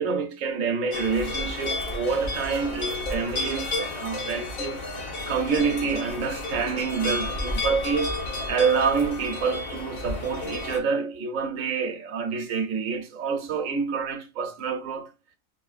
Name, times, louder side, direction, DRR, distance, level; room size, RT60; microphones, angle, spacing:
voice 1, 0.0-4.8 5.3-8.1 8.5-15.1, right 5 dB, 70° right, 1.1 m, -27 dB
sound 1, 0.9-10.8, left 2 dB, 75° left, 1.6 m, -31 dB
4.8 x 3.4 x 2.4 m
omnidirectional pair, 1.5 m